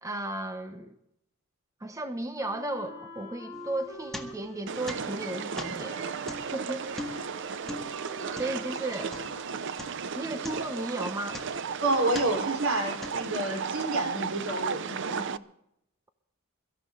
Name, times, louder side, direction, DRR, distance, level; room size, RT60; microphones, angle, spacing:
voice 1, 0.0-1.0 1.8-6.0 6.3-7.4 8.4-9.2 10.1-11.4, right 2 dB, 15° right, 8 dB, 0.9 m, -35 dB
Wind instrument woodwind instrument, 2.3-10.5, equal, 20° left, 5.5 m, -46 dB
sound 1, 3.5-4.6 4.9-9.5 9.8-10.1 10.4-11.7 12.1-12.5 13.0-13.6, left 1 dB, ahead, 1.9 m, -42 dB
sound 2, 4.7-15.4, right 6 dB, 60° right, 0.6 m, -35 dB
voice 2, 11.8-15.2, right 2 dB, 80° right, 3 dB, 4.3 m, -29 dB
24.0 x 14.0 x 3.9 m, 0.80 s
head